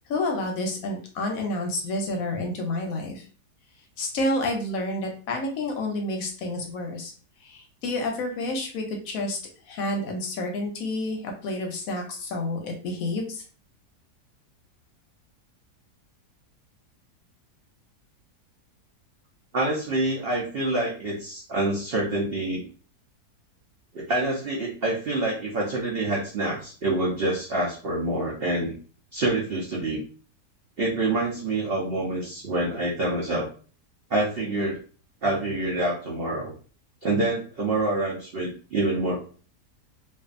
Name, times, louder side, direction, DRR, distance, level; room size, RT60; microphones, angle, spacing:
voice 1, 0.1-3.2 4.0-7.1 7.4-9.4 9.7-13.4, left 2 dB, 70° left, 2 dB, 0.9 m, -29 dB
voice 2, 19.5-22.7 23.9-28.7 29.1-30.0 30.8-33.5 34.1-34.8 35.2-36.5 37.0-39.2, right 2 dB, 85° right, -3 dB, 0.5 m, -26 dB
2.5 x 2.3 x 2.4 m, 0.40 s
omnidirectional pair, 1.7 m